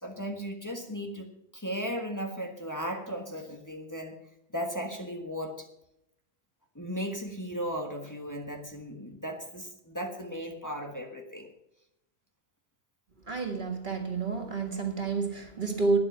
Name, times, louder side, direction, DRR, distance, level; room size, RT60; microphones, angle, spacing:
voice 1, 0.0-4.2 4.5-5.7 6.7-11.5, equal, 20° left, 2 dB, 1.4 m, -36 dB
voice 2, 13.3-16.0, right 4 dB, 50° right, 4 dB, 1.8 m, -29 dB
12.0 x 9.9 x 5.7 m, 0.82 s
omnidirectional pair, 1.1 m